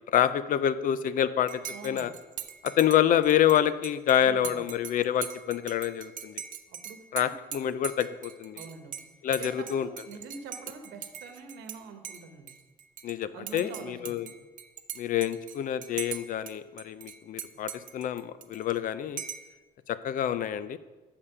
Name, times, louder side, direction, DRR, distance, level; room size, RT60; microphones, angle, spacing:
voice 1, 0.0-1.5 1.8-2.1 2.6-6.4 7.1-8.6 9.2-9.9 13.0-14.3 15.0-19.2 19.9-20.8, left 10 dB, 55° left, 15 dB, 0.5 m, -27 dB
Dishes pots and pans / Cutlery silverware / Chink clink, 1.5-11.8 12.0-13.1 13.5-16.5 16.8-18.8 19.2-19.5, right 9 dB, 50° right, 0.6 m, -41 dB
voice 2, 1.7-2.1 4.2-4.6 6.7-7.3 8.5-9.0 9.4-12.5 13.3-14.2, right 5 dB, 85° right, 6 dB, 1.1 m, -45 dB
6.7 x 5.5 x 6.8 m, 1.3 s
cardioid pair, 110°, 17 cm